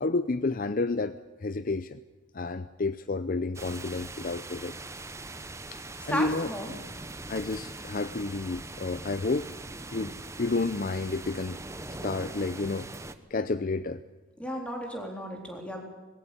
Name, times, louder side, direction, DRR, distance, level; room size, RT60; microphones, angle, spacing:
voice 1, 0.0-1.2 1.4-2.0 2.3-4.7 5.7-6.5 7.3-9.5 9.9-11.6 11.9-12.9 13.3-14.0, left 3 dB, 45° left, 13 dB, 0.6 m, -30 dB
sound 1, 3.5-13.2, right 2 dB, 15° right, 0.9 m, -42 dB
voice 2, 6.1-6.7 14.4-15.8, equal, 5° left, 1 dB, 3.9 m, -34 dB
20.5 x 17.0 x 8.7 m, 1.3 s
head